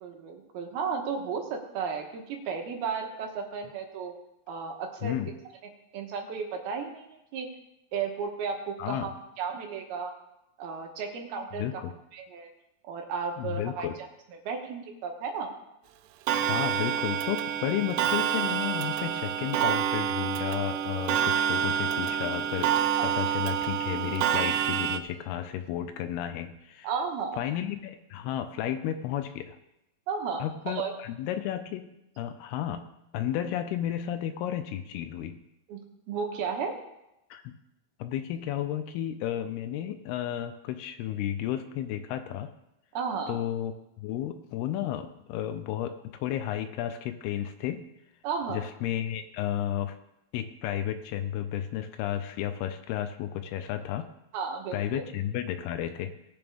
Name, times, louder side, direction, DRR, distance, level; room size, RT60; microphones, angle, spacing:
voice 1, 0.0-4.1 4.5-5.2 5.9-7.5 7.9-9.1 9.4-10.1 10.6-11.7 12.1-12.5 12.8-13.9 14.5-15.5 23.0-23.2 26.8-27.4 30.1-30.9 35.7-35.8 36.1-36.7 42.9-43.4 48.2-48.6 54.3-55.0, right 5 dB, 70° right, 3 dB, 3.0 m, -33 dB
voice 2, 5.0-5.3 8.8-9.1 11.6-11.9 13.4-14.0 16.5-26.9 27.4-29.6 30.4-31.9 32.2-32.9 33.1-35.4 37.3-37.5 38.0-42.5 43.3-43.7 44.0-47.8 48.5-50.0 50.3-54.1 54.7-56.1, left 11 dB, 80° left, 9 dB, 2.5 m, -32 dB
Clock, 16.3-25.0, right 9 dB, 90° right, 2.8 m, -28 dB
19.0 x 7.1 x 3.6 m, 0.87 s
omnidirectional pair, 4.7 m